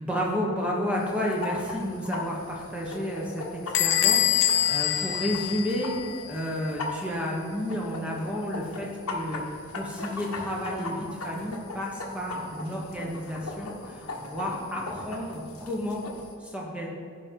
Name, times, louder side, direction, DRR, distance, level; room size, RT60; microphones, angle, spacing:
voice 1, 0.0-6.0 6.3-9.4 9.7-16.0 16.4-16.9, equal, 5° right, -3 dB, 1.1 m, -31 dB
sound 1, 0.9-16.3, left 3 dB, 90° left, 1.3 m, -39 dB
Bell / Squeak, 3.7-6.3, left 11 dB, 55° left, 0.7 m, -24 dB
15.5 x 5.2 x 4.5 m, 2.1 s
head